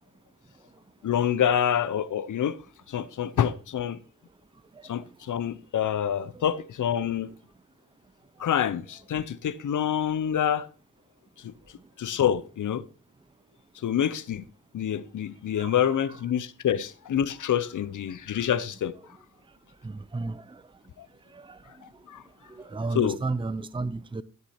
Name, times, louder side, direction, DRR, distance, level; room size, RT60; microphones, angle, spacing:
voice 1, 1.0-2.6 2.9-4.0 4.8-7.3 8.4-10.7 11.4-11.5 12.0-12.8 13.8-14.4 14.7-18.9 21.0-21.1 22.1-22.2 22.9-23.2, left 9 dB, 80° left, 0.7 m, -27 dB
voice 2, 15.6-16.2 19.8-20.6 21.3-21.6 22.5-24.2, right 3 dB, 15° right, 0.6 m, -33 dB
13.5 x 6.1 x 4.3 m
cardioid pair, 65°, 30 cm